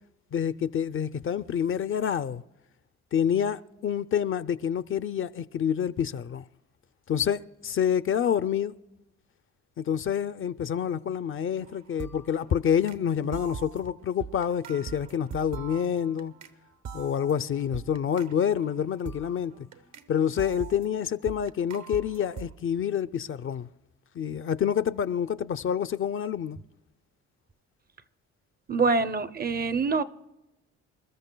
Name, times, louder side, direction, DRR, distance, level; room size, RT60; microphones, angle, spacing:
voice 1, 0.3-2.4 3.1-6.4 7.1-8.7 9.8-16.3 16.9-19.7 20.1-23.7 24.1-26.6, left 8 dB, 45° left, 0.5 m, -27 dB
sound 1, 11.6-11.7 12.0-13.0 13.3-16.5 16.8-20.1 20.4-22.5, right 6 dB, 65° right, 1.1 m, -42 dB
voice 2, 28.7-30.0, right 4 dB, 30° right, 0.6 m, -25 dB
27.5 x 13.0 x 2.2 m
cardioid pair, 90°, 30 cm